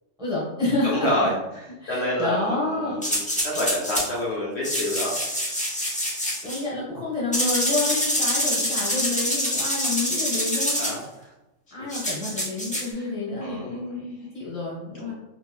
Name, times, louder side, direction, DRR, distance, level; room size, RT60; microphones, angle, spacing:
voice 1, 0.2-1.1 1.8-3.0 6.4-10.8 11.7-15.1, left 2 dB, 5° right, -7 dB, 0.9 m, -29 dB
voice 2, 0.8-5.2 10.8-11.3 12.9-13.1 13.4-13.8 14.9-15.1, left 1 dB, 60° left, -4 dB, 0.9 m, -28 dB
sound 1, 3.0-4.1 4.6-6.6 7.3-10.9 11.9-12.9, equal, 10° left, 0.3 m, -26 dB
4.1 x 2.1 x 2.2 m, 0.96 s
omnidirectional pair, 1.4 m